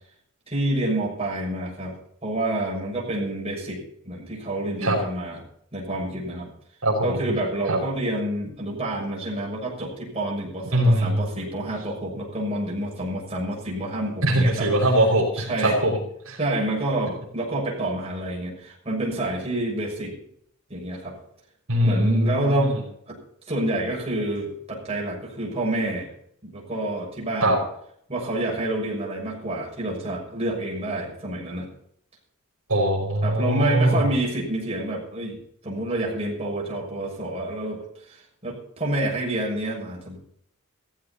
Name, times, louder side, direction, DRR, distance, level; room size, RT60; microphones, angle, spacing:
voice 1, 0.5-1.9 2.2-5.4 5.7-6.5 7.0-14.7 15.3-15.8 16.4-20.1 20.7-21.2 21.8-22.8 23.1-23.2 23.5-26.1 26.4-27.6 28.1-31.7 33.2-35.4 35.6-40.2, right 1 dB, 30° right, -4 dB, 6.6 m, -28 dB
voice 2, 6.8-7.2 7.7-7.8 10.7-11.3 14.2-16.0 16.3-16.4 21.7-22.8 27.4-27.6 32.7-34.1, right 1 dB, 70° right, -1 dB, 5.7 m, -21 dB
16.5 x 15.0 x 4.3 m, 0.68 s
head